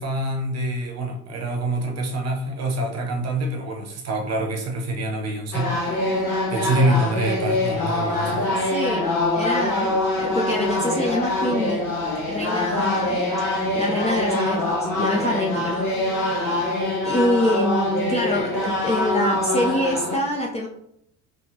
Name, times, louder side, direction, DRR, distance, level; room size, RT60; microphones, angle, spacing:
voice 1, 0.0-6.0 6.5-8.6, right 1 dB, 35° right, 2 dB, 1.0 m, -26 dB
sound 1, 5.5-20.2, left 2 dB, 85° left, 1.2 m, -24 dB
voice 2, 8.6-11.9 12.3-13.3 13.7-15.9 16.3-16.5 17.0-20.7, left 1 dB, 15° left, -2 dB, 0.5 m, -25 dB
4.8 x 2.5 x 2.6 m, 0.75 s
figure-of-eight pair, 60°, 42 cm